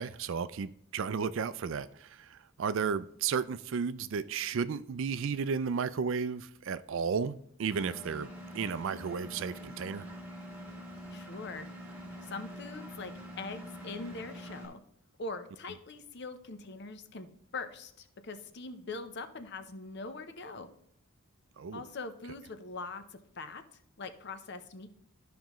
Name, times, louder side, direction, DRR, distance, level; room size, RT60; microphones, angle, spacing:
voice 1, 0.0-10.1 21.6-21.9, right 6 dB, 60° right, 0.4 m, -33 dB
Engine, 7.7-14.7, equal, 10° right, 1.7 m, -45 dB
voice 2, 11.1-11.7 12.2-14.8 15.2-20.7 21.7-23.6 24.0-24.9, left 3 dB, 50° left, 0.7 m, -42 dB
12.5 x 5.1 x 3.1 m
head